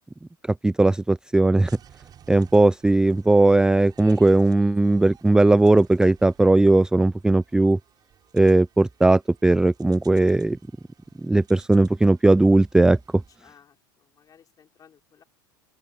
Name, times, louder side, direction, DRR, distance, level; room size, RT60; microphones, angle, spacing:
voice 1, 0.6-1.7 2.3-7.8 8.3-10.6 11.2-13.0, right 2 dB, 5° right, 0.4 m, -18 dB
sound 1, 1.7-13.4, right 9 dB, 35° right, 5.6 m, -55 dB
voice 2, 13.4-15.2, left 8 dB, 35° left, 5.9 m, -56 dB
open air
hypercardioid pair, 95°, 11 cm